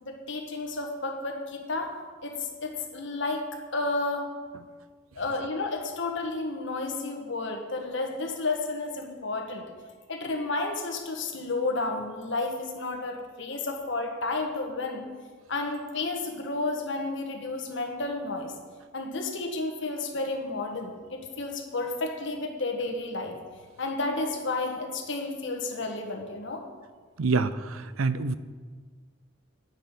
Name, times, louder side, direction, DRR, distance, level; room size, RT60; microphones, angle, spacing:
voice 1, 0.0-1.9 2.2-3.4 3.7-4.3 5.1-9.6 10.1-15.0 15.5-18.5 18.9-23.4 23.8-26.6, left 3 dB, 60° left, 2 dB, 1.6 m, -31 dB
voice 2, 27.2-28.3, right 4 dB, 80° right, 14 dB, 0.6 m, -26 dB
10.5 x 9.1 x 5.6 m, 1.5 s
head